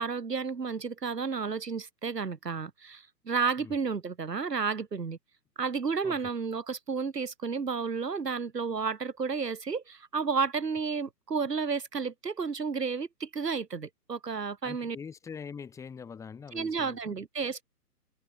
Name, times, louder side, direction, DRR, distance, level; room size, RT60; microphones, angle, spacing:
voice 1, 0.0-5.2 5.6-15.0 16.5-17.6, right 5 dB, 90° right, 1.0 m, -32 dB
voice 2, 14.6-17.2, left 6 dB, 5° left, 1.5 m, -43 dB
figure-of-eight pair, 125°, 47 cm